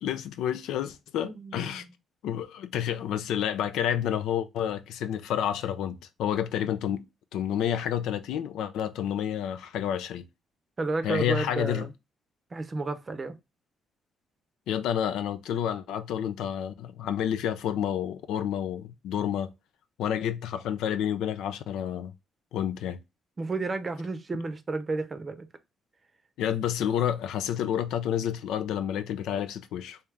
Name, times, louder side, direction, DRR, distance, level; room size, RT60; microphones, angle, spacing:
voice 1, 0.0-1.9 2.2-7.0 7.3-10.3 11.0-11.9 14.7-19.5 20.0-22.1 22.5-23.0 26.4-30.0, left 10 dB, 85° left, 0.4 m, -29 dB
voice 2, 1.2-1.9 10.8-11.9 12.5-13.3 23.4-25.5, right 3 dB, 35° right, 0.6 m, -32 dB
3.3 x 2.7 x 3.4 m
cardioid pair, 90°, 0 cm